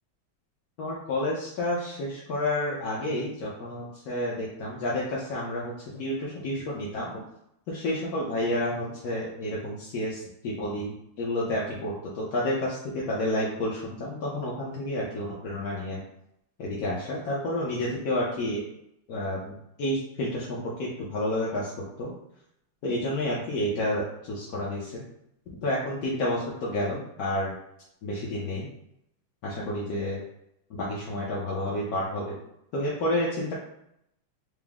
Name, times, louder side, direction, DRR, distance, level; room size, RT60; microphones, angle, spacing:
voice 1, 0.8-7.2 7.7-16.0 16.6-18.6 19.1-21.7 22.0-22.1 22.8-25.0 25.6-27.5 28.0-28.7 29.4-30.2 30.7-32.4 32.7-33.5, left 1 dB, 65° left, -6 dB, 0.9 m, -30 dB
4.9 x 2.0 x 3.5 m, 0.78 s
omnidirectional pair, 2.4 m